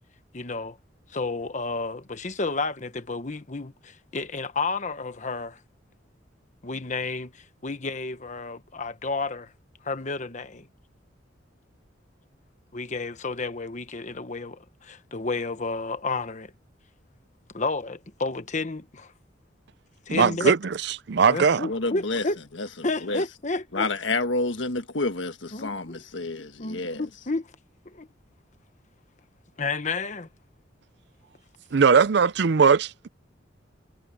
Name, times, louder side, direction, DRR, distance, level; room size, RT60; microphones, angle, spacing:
voice 1, 0.3-0.8 1.1-5.6 6.6-9.5 9.8-10.7 12.7-16.5 17.5-19.1 20.1-20.5 21.3-22.4 22.8-23.9 25.5-26.0 26.6-27.5 27.8-28.1 29.6-30.3, left 3 dB, 40° left, 1.2 m, -31 dB
voice 2, 20.1-20.6 21.1-21.7 31.7-33.1, right 6 dB, 60° right, 0.5 m, -19 dB
voice 3, 21.7-22.2 22.6-22.7 23.0-23.2 23.7-27.0, left 2 dB, 80° left, 1.5 m, -29 dB
head